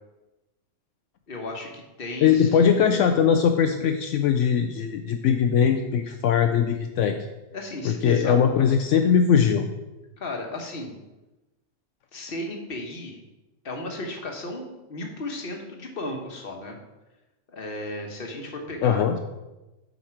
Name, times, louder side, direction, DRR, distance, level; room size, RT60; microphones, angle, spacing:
voice 1, 1.3-2.8 7.5-8.7 10.2-10.9 12.1-13.2 13.6-16.8 17.5-19.0, left 2 dB, 50° left, 2 dB, 1.3 m, -35 dB
voice 2, 2.2-7.2 7.8-9.7 18.8-19.2, left 7 dB, 75° left, 6 dB, 0.9 m, -20 dB
8.0 x 5.2 x 4.5 m, 1.0 s
omnidirectional pair, 1.3 m